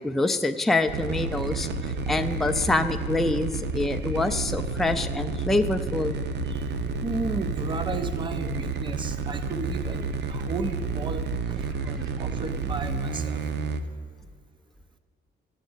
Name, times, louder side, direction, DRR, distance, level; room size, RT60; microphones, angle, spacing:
voice 1, 0.0-1.7 2.1-6.2 11.9-12.0, left 2 dB, ahead, 6 dB, 0.4 m, -26 dB
sound 1, 0.9-13.8, right 4 dB, 80° right, 0.8 m, -30 dB
voice 2, 7.0-13.4, right 3 dB, 25° right, 9 dB, 0.8 m, -34 dB
9.0 x 7.4 x 8.8 m, 2.2 s
cardioid pair, 120°, 18 cm